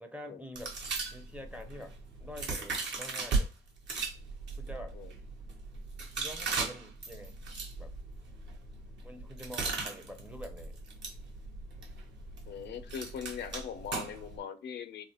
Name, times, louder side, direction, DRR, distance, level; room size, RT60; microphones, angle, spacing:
voice 1, 0.0-0.8 1.1-3.5 4.6-5.0 6.2-7.3 7.8-7.9 9.0-10.8, equal, 5° right, 0.5 m, -46 dB
sound 1, 0.6-3.4 3.8-14.4, right 4 dB, 65° right, 1.0 m, -38 dB
voice 2, 12.5-15.0, left 7 dB, 60° left, 0.4 m, -41 dB
3.1 x 2.1 x 2.8 m
cardioid pair, 90°, 20 cm